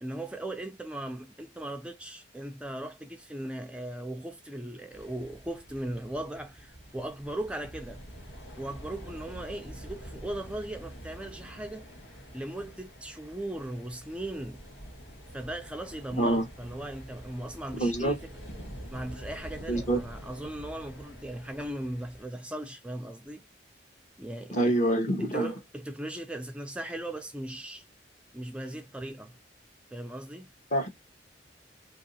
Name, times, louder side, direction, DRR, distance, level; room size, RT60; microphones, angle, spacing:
voice 1, 0.0-8.0 8.6-11.9 12.3-14.6 15.3-18.3 18.9-23.4 24.2-24.8 25.2-27.8 28.3-29.3 29.9-30.5, right 1 dB, 5° right, 0.3 m, -38 dB
sound 1, 4.9-22.2, equal, 70° left, 1.8 m, -46 dB
voice 2, 16.2-16.5 17.8-18.2 19.7-20.0 24.5-25.5 30.7-30.9, right 1 dB, 40° left, 1.1 m, -26 dB
2.8 x 2.7 x 4.0 m
head